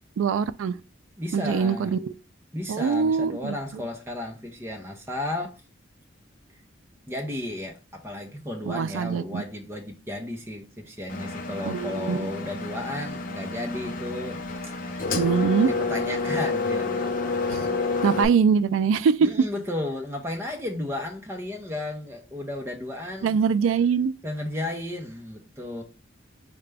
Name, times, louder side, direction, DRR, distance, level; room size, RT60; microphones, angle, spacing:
voice 1, 0.2-0.8 1.3-2.1 2.7-3.8 8.7-9.4 11.7-12.3 15.2-15.7 17.5-17.7 18.0-19.3 23.2-24.1, right 6 dB, 90° right, 0.3 m, -23 dB
voice 2, 1.2-1.9 2.5-5.6 7.1-15.2 15.6-17.1 18.1-18.2 19.2-23.3 24.2-25.8, left 1 dB, 15° right, 0.6 m, -34 dB
Engine, 11.1-18.3, left 3 dB, 45° left, 0.5 m, -29 dB
4.8 x 2.2 x 3.3 m
head